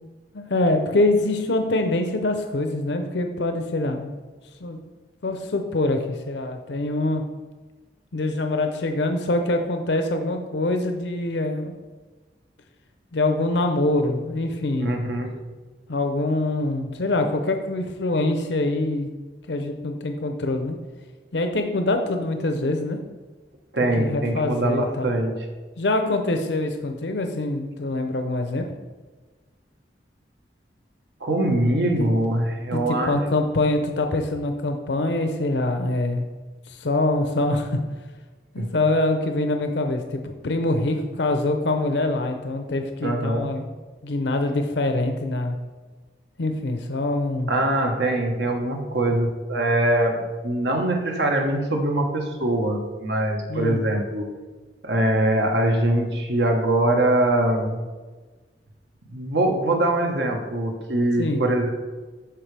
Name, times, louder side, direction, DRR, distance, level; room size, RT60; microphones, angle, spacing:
voice 1, 0.3-4.1 4.6-4.8 5.2-7.2 8.1-11.7 13.1-14.9 15.9-19.1 19.5-20.8 21.3-23.0 24.0-25.1 25.8-28.7 32.0-32.1 32.7-36.2 36.7-37.8 38.5-43.6 44.0-45.6 46.4-47.5 53.5-53.8 61.2-61.4, left 2 dB, 80° left, 5 dB, 0.7 m, -24 dB
voice 2, 14.8-15.3 23.7-25.3 31.2-33.2 38.6-38.7 43.0-43.5 47.5-54.3 54.8-57.8 59.1-61.7, right 1 dB, 80° right, 2 dB, 1.3 m, -23 dB
13.5 x 4.8 x 3.4 m, 1.3 s
head